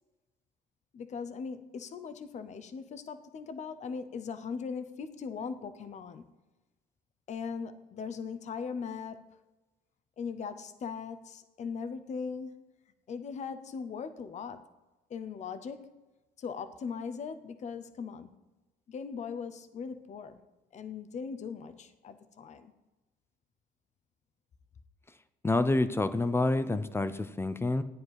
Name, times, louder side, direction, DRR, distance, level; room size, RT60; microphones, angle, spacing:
voice 1, 0.9-6.3 7.3-9.2 10.2-12.6 13.1-14.6 15.1-15.9 16.4-18.4 18.9-20.4 20.7-22.7, left 5 dB, 45° left, 11 dB, 0.9 m, -39 dB
voice 2, 25.4-27.8, left 2 dB, 15° left, 12 dB, 0.7 m, -28 dB
13.5 x 9.4 x 4.8 m, 1.1 s
cardioid pair, 110°, 17 cm